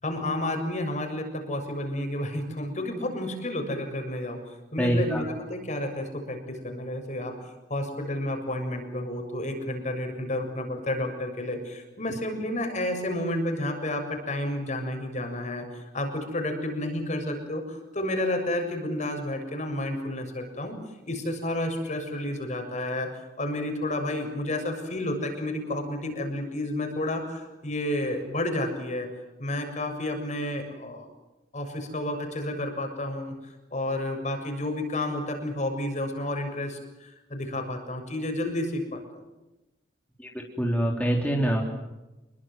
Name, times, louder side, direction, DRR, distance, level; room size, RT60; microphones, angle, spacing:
voice 1, 0.0-4.4 4.7-20.8 21.1-29.1 29.4-31.1 31.5-39.0, left 1 dB, 45° left, 5 dB, 6.9 m, -31 dB
voice 2, 4.8-5.2 40.2-41.6, right 1 dB, 10° left, -1 dB, 3.8 m, -25 dB
28.5 x 23.0 x 7.6 m, 1.0 s
head